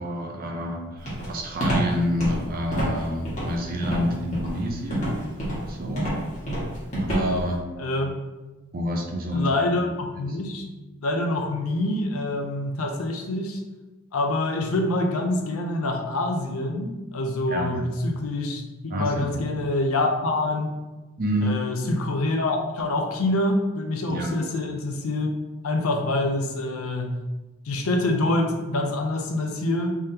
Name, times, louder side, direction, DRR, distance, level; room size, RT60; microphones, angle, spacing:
voice 1, 0.0-6.1 6.9-7.6 8.7-9.7 10.3-10.4 17.5-17.8 18.9-19.4 21.2-21.6 24.1-24.4, equal, 45° right, 1 dB, 0.6 m, -28 dB
Walk footsteps, 1.1-7.5, equal, 35° left, 1.4 m, -28 dB
voice 2, 7.8-8.2 9.3-10.7 11.0-13.6 14.1-20.7 21.4-25.3 25.6-27.2 27.7-29.9, left 2 dB, 80° left, 3 dB, 0.6 m, -26 dB
3.4 x 3.4 x 2.8 m, 1.1 s
head